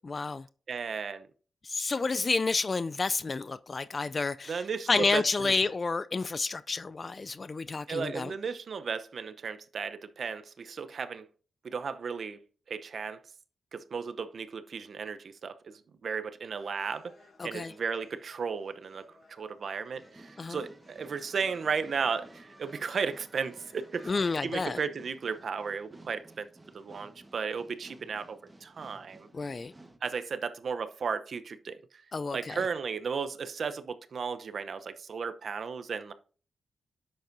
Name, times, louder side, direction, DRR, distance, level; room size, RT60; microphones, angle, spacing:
voice 1, 0.0-0.5 1.6-8.3 17.4-17.7 20.4-20.6 24.1-24.8 29.3-29.7 32.1-32.6, left 4 dB, 45° left, 0.3 m, -30 dB
voice 2, 0.7-1.3 4.5-5.5 7.9-11.3 11.6-12.4 12.7-13.2 13.7-17.1 17.4-24.1 24.4-26.5 26.7-29.3 30.0-31.8 32.3-36.1, right 5 dB, 65° right, 0.8 m, -35 dB
sound 1, 16.6-24.6, left 2 dB, 60° left, 4.5 m, -60 dB
sound 2, 19.9-30.0, right 2 dB, 20° right, 1.3 m, -54 dB
10.0 x 7.7 x 2.7 m
supercardioid pair, 50°, 0 cm